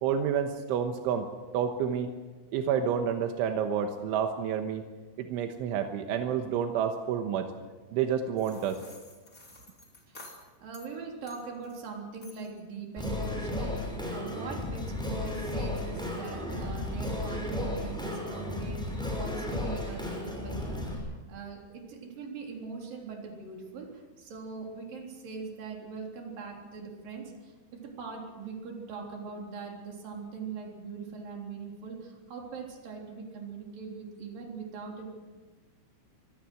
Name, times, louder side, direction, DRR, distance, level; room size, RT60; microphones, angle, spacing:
voice 1, 0.0-1.3 1.5-2.1 2.5-4.8 5.2-7.5 7.9-8.8, right 8 dB, 85° right, 5 dB, 3.6 m, -29 dB
sound 1, 8.4-10.9 11.3-11.9 12.2-12.6, left 2 dB, 20° left, 2.9 m, -52 dB
voice 2, 10.1-35.1, right 5 dB, 50° right, 1 dB, 5.0 m, -41 dB
Singing, 13.0-20.9, left 1 dB, ahead, 5.5 m, -34 dB
24.5 x 20.0 x 6.3 m, 1.3 s
omnidirectional pair, 5.5 m